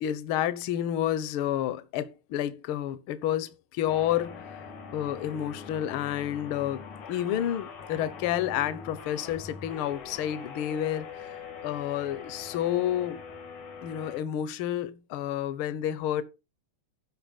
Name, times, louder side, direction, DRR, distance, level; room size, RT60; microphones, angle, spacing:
voice 1, 0.0-4.5 4.9-6.8 7.1-11.3 11.6-13.2 13.8-16.2, left 11 dB, 65° left, 1.4 m, -30 dB
sound 1, 3.9-14.2, left 5 dB, 90° left, 3.5 m, -43 dB
12.0 x 5.6 x 5.8 m
omnidirectional pair, 3.4 m